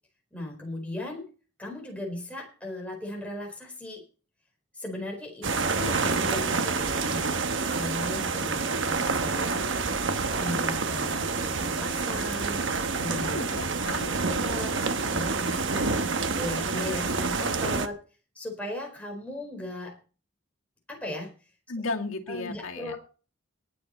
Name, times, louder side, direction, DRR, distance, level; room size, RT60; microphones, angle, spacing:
voice 1, 0.3-1.3 1.6-4.0 4.7-7.4 7.7-9.7 10.4-13.6 14.2-14.7 15.1-16.1 16.4-18.0 18.3-20.0 20.9-21.3 22.3-23.0, left 1 dB, 5° left, 0 dB, 4.6 m, -37 dB
sound 1, 5.4-17.9, right 4 dB, 60° right, 1.1 m, -28 dB
voice 2, 13.2-14.2 21.7-23.0, left 3 dB, 80° left, 1 dB, 2.3 m, -34 dB
19.5 x 8.2 x 4.3 m, 0.37 s
head